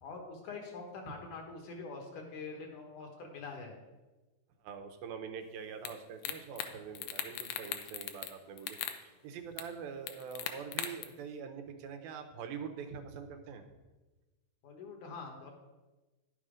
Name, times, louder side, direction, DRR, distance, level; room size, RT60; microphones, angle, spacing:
voice 1, 0.0-3.8 14.6-15.5, left 4 dB, 65° left, 2 dB, 2.6 m, -45 dB
voice 2, 4.6-13.6, right 6 dB, 85° right, 5 dB, 2.7 m, -44 dB
sound 1, 5.9-6.0 6.2-6.7 7.0-8.3 8.6-9.0 9.6-9.7 10.1-11.0, left 10 dB, 85° left, 2.5 m, -38 dB
11.0 x 7.1 x 5.0 m, 1.1 s
omnidirectional pair, 4.1 m